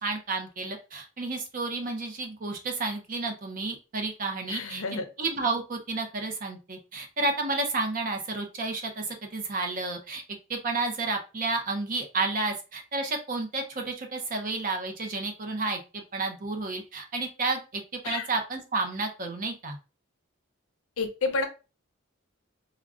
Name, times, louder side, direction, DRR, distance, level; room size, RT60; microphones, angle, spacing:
voice 1, 0.0-4.8 5.2-10.2 10.5-19.8, right 3 dB, 40° right, 4 dB, 0.6 m, -31 dB
voice 2, 4.5-5.0 18.0-18.3 21.0-21.5, left 3 dB, 80° left, 6 dB, 0.6 m, -29 dB
3.6 x 2.2 x 2.4 m, 0.31 s
head